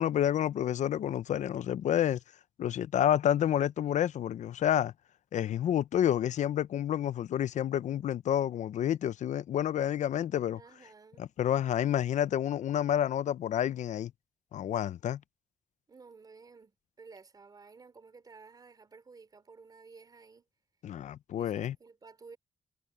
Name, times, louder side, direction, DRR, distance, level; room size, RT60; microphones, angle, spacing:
voice 1, 0.0-2.2 2.6-4.9 5.3-10.6 11.2-14.1 14.5-15.2 20.8-21.8, left 10 dB, 90° left, 0.5 m, -29 dB
voice 2, 10.5-11.3 15.9-20.5 21.4-22.4, right 4 dB, 35° right, 4.1 m, -54 dB
wide cardioid pair, 170°, 12 cm